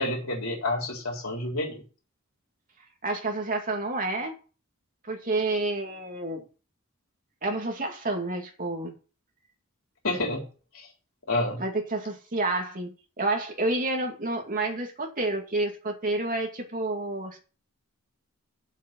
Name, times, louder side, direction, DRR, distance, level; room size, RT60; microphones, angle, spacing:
voice 1, 0.0-1.8 10.0-10.4 10.7-10.9 11.3-11.6, left 2 dB, 70° left, 4.0 m, -29 dB
voice 2, 3.0-4.3 5.1-6.4 7.4-8.9 11.6-17.4, right 2 dB, 40° right, 2.4 m, -29 dB
7.5 x 6.5 x 7.6 m
head